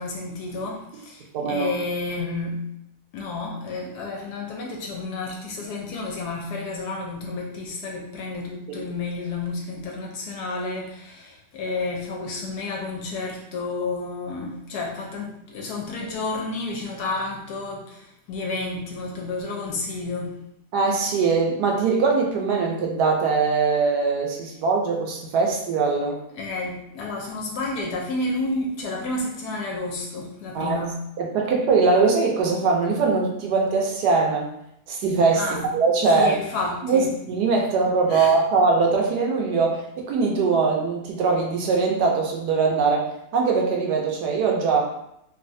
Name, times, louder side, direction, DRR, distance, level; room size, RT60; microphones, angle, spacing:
voice 1, 0.0-2.7 3.1-20.4 26.3-31.0 35.4-35.7 36.1-37.1 38.1-38.3, left 3 dB, 75° left, 0 dB, 1.0 m, -31 dB
voice 2, 1.3-1.7 8.7-8.8 20.7-26.2 30.5-30.8 31.2-34.5 34.9-36.4 36.8-44.8, right 4 dB, 75° right, 0 dB, 1.1 m, -21 dB
3.2 x 2.4 x 2.6 m, 0.78 s
omnidirectional pair, 1.9 m